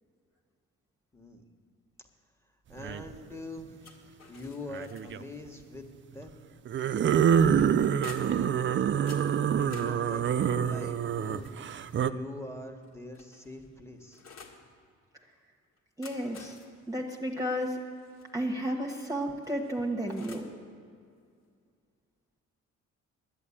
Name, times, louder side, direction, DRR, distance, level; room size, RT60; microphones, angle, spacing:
voice 1, 2.7-3.8 4.3-5.9 6.1-6.4 9.2-11.5 11.9-14.2, left 2 dB, 10° left, 4 dB, 1.5 m, -43 dB
sound 1, 2.8-3.1 4.7-5.2 6.7-12.1, right 8 dB, 40° right, 0.5 m, -26 dB
sound 2, 3.8-5.4 6.7-8.5 9.1-12.0 12.8-14.6 15.8-18.3 19.4-20.6, left 5 dB, 60° left, 1.9 m, -52 dB
voice 2, 16.0-16.6 16.9-17.8 18.3-20.5, equal, 10° right, 0 dB, 1.2 m, -32 dB
10.5 x 9.6 x 8.6 m, 2.2 s
cardioid pair, 90°, 30 cm